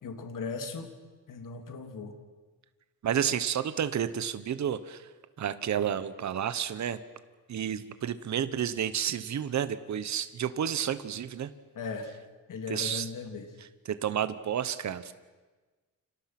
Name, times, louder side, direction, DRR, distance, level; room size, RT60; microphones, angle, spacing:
voice 1, 0.0-0.9 1.3-2.1 11.7-12.1 12.5-13.5, left 4 dB, 65° left, 5 dB, 3.2 m, -37 dB
voice 2, 3.0-5.1 5.4-7.0 7.5-11.5 12.7-13.1 13.8-15.1, right 9 dB, 55° right, 12 dB, 1.2 m, -31 dB
30.0 x 25.5 x 6.1 m, 1.3 s
wide cardioid pair, 165°, 35 cm